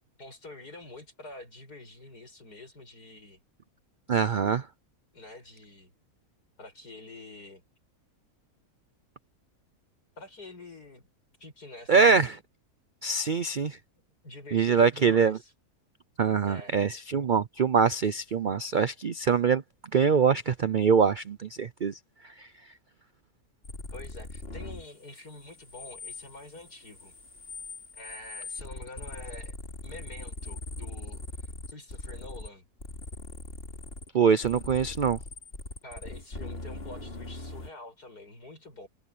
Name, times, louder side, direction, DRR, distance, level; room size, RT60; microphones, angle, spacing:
voice 1, 0.2-3.4 5.1-5.9 6.6-7.6 10.2-11.1 11.4-12.4 14.2-15.5 16.4-16.7 23.9-27.1 27.9-29.6 29.8-31.2 31.7-32.6 35.8-38.9, left 2 dB, 80° left, 8.8 m, -46 dB
voice 2, 4.1-4.6 11.9-12.4 13.0-13.8 14.5-15.4 16.2-19.6 19.9-22.0 34.1-35.2, right 6 dB, 60° right, 0.5 m, -24 dB
sound 1, 23.6-24.9 25.2-32.5 32.8-34.1 34.4-37.7, left 2 dB, 40° left, 3.0 m, -41 dB
omnidirectional pair, 1.7 m